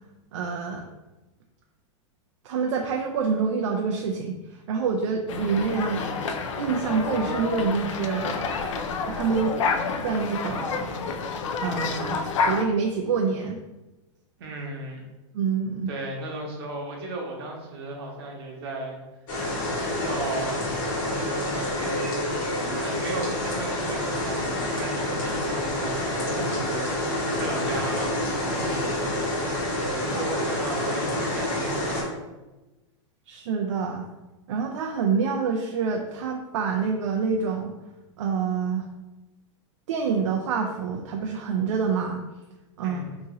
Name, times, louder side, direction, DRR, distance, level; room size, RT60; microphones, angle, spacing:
voice 1, 0.3-0.9 2.4-4.4 4.7-6.1 6.6-8.4 9.1-9.6 10.0-10.9 11.6-13.6 15.3-15.9 33.3-34.0 34.5-37.7 38.2-38.9 39.9-42.2 42.8-43.0, right 5 dB, 70° right, 2 dB, 0.4 m, -26 dB
sound 1, 5.3-12.6, left 4 dB, 70° left, 0.4 m, -29 dB
voice 2, 14.4-15.0 15.9-19.0 19.7-20.6 21.0-22.2 22.6-28.2 28.5-29.5 29.8-32.0 42.8-43.2, right 2 dB, 50° right, -1 dB, 1.0 m, -36 dB
sound 2, 19.3-32.0, left 1 dB, 40° left, 1.4 m, -28 dB
3.0 x 2.6 x 3.7 m, 1.1 s
supercardioid pair, 175°, 16 cm